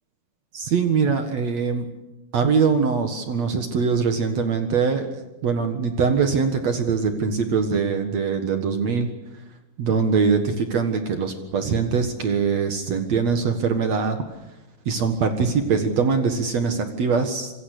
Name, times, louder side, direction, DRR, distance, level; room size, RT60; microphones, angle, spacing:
voice 1, 0.5-1.9 2.3-9.1 9.8-14.2 14.8-17.5, right 5 dB, 60° right, 6 dB, 1.7 m, -22 dB
27.0 x 23.5 x 6.7 m, 0.96 s
omnidirectional pair, 5.5 m